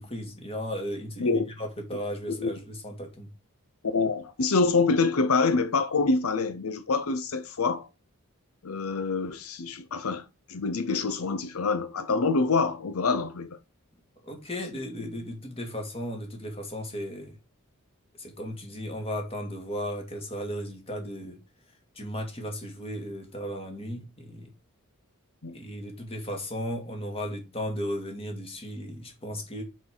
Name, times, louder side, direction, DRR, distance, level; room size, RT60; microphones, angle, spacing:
voice 1, 0.0-3.3 14.2-17.4 18.2-21.4 21.9-24.5 25.5-29.6, equal, 25° left, 2.6 m, -35 dB
voice 2, 3.9-7.9 8.6-13.6 25.4-25.6, left 4 dB, 80° left, 0.8 m, -26 dB
6.3 x 6.3 x 3.9 m
head